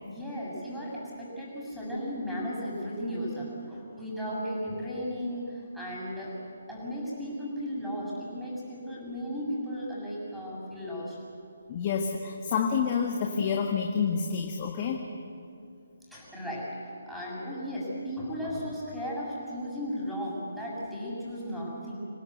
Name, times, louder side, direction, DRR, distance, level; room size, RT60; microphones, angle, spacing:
voice 1, 0.0-6.3 6.7-11.2 16.1-21.9, equal, ahead, -6 dB, 7.1 m, -35 dB
voice 2, 11.7-15.0, left 6 dB, 35° left, 2 dB, 1.7 m, -28 dB
26.5 x 18.0 x 8.1 m, 2.5 s
figure-of-eight pair, 145°, 0 cm